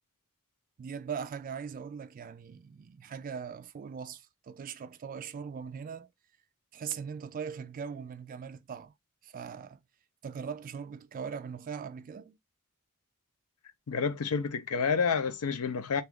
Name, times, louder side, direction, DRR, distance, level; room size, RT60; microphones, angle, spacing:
voice 1, 0.8-6.1 6.7-8.9 9.2-9.8 10.2-12.4, right 6 dB, 40° right, 0.3 m, -40 dB
voice 2, 13.9-16.0, left 5 dB, 80° left, 0.6 m, -29 dB
2.8 x 2.3 x 3.4 m
head